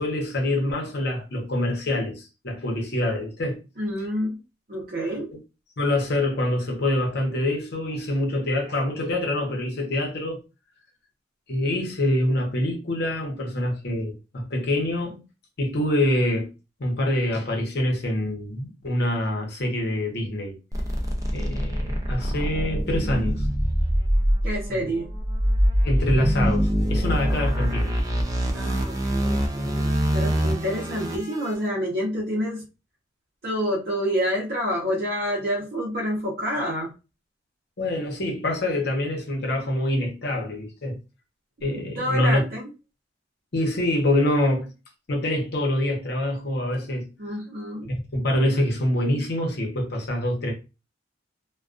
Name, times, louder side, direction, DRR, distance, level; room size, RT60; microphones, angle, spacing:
voice 1, 0.0-3.6 5.8-10.4 11.5-15.2 15.6-16.5 16.8-20.6 21.3-23.5 24.7-24.9 25.8-27.9 29.6-29.7 37.8-41.0 41.6-42.4 43.5-44.7 45.1-47.1 47.8-50.5, left 1 dB, 60° left, 0.8 m, -25 dB
voice 2, 3.8-4.4 4.7-5.3 24.4-25.1 27.7-27.8 28.5-32.6 33.4-36.9 42.0-42.6 47.2-47.9, equal, 50° right, 0.7 m, -28 dB
sound 1, 20.7-31.5, equal, 20° right, 0.3 m, -24 dB
2.2 x 2.2 x 2.4 m
head